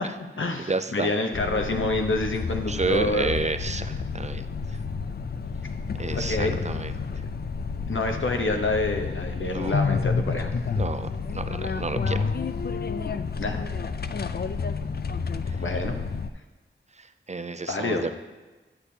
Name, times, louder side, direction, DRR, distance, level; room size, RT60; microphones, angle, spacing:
voice 1, 0.0-3.3 6.1-6.6 7.9-10.5 13.4-13.6 15.6-16.0 17.7-18.1, left 2 dB, 75° left, 3 dB, 0.9 m, -27 dB
voice 2, 0.6-1.1 2.7-4.5 6.0-6.9 9.4-9.8 10.8-12.3 15.5-15.6 17.0-18.2, right 3 dB, 35° right, 10 dB, 0.4 m, -31 dB
sound 1, 1.3-16.3, left 5 dB, 50° left, 0.4 m, -30 dB
9.8 x 8.3 x 2.8 m, 1.2 s
wide cardioid pair, 50°, 21 cm